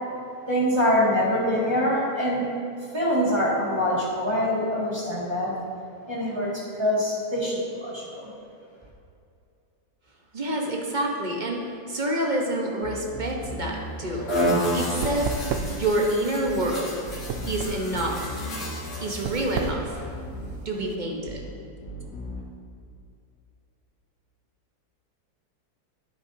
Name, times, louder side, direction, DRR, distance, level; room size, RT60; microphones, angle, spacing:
voice 1, 0.5-2.4 2.9-5.5 6.1-8.3, equal, 15° right, -7 dB, 2.1 m, -24 dB
voice 2, 10.3-15.3 15.7-17.0 17.5-18.4 19.0-19.9 20.6-21.4, right 1 dB, 35° right, 0 dB, 0.9 m, -28 dB
sound 1, 12.8-14.3 14.6-15.8 16.4-16.7 17.0-19.1 19.4-20.6 21.2-21.5 21.8-22.4, equal, 90° left, 2.5 m, -37 dB
sound 2, 13.4-21.0, right 5 dB, 70° right, 0.7 m, -34 dB
sound 3, 14.3-19.7, equal, 55° left, 2.7 m, -30 dB
11.0 x 8.6 x 2.8 m, 2.5 s
omnidirectional pair, 1.8 m